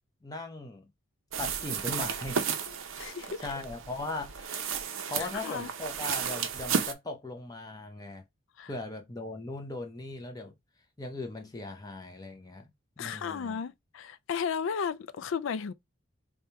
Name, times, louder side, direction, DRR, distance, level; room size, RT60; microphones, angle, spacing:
voice 1, 0.2-0.9 1.4-2.8 3.4-4.6 5.1-8.2 8.7-10.5 11.0-12.7 13.0-13.6, left 2 dB, 20° left, 0.6 m, -39 dB
sound 1, 1.3-6.9, right 6 dB, 75° right, 0.6 m, -33 dB
voice 2, 3.0-3.5 5.2-5.7 8.6-8.7 13.0-15.7, left 6 dB, 70° left, 0.4 m, -34 dB
3.5 x 2.3 x 4.2 m
head